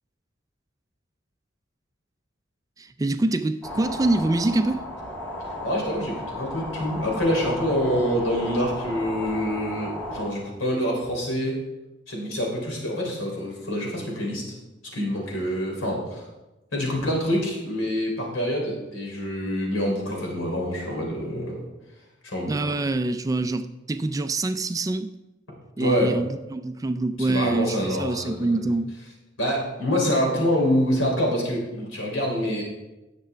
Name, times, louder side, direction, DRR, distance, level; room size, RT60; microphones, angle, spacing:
voice 1, 2.8-4.8 22.5-25.1 25.8-28.9, right 2 dB, 15° right, 9 dB, 0.3 m, -25 dB
sound 1, 3.6-10.3, left 1 dB, 10° left, 2.2 m, -34 dB
voice 2, 5.6-11.6 12.1-14.5 14.9-16.2 16.7-21.6 22.2-22.7 25.8-26.1 27.2-28.7 29.4-32.6, equal, 85° left, -1 dB, 3.3 m, -26 dB
17.5 x 6.7 x 3.4 m, 1.1 s
head